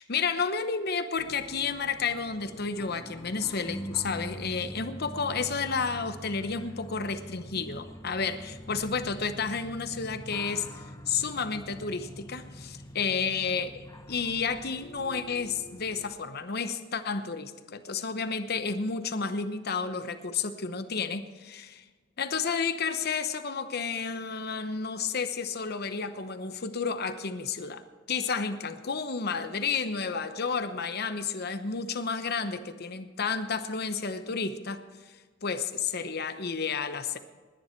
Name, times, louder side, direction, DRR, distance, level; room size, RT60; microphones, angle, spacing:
voice 1, 0.0-10.7 11.1-21.8 22.2-27.8 28.1-34.8 35.4-37.2, left 5 dB, 55° left, 10 dB, 0.9 m, -31 dB
sound 1, 1.2-16.1, equal, 20° left, 1.1 m, -44 dB
20.0 x 10.5 x 4.5 m, 1.4 s
head